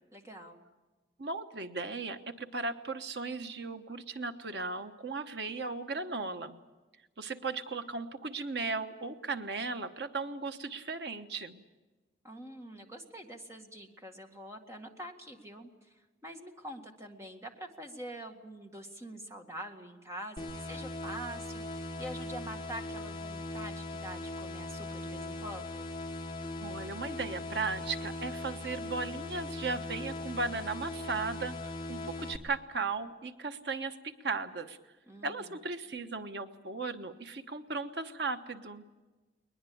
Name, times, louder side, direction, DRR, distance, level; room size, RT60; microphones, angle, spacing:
voice 1, 0.1-0.6 12.2-25.9 35.1-35.5, right 1 dB, 15° right, 4 dB, 1.9 m, -45 dB
voice 2, 1.2-6.6 7.2-11.6 26.6-34.8 35.2-38.8, right 4 dB, 80° right, 8 dB, 1.2 m, -36 dB
sound 1, 20.4-32.4, left 2 dB, 25° left, 1.7 m, -40 dB
21.5 x 21.0 x 8.7 m, 1.2 s
head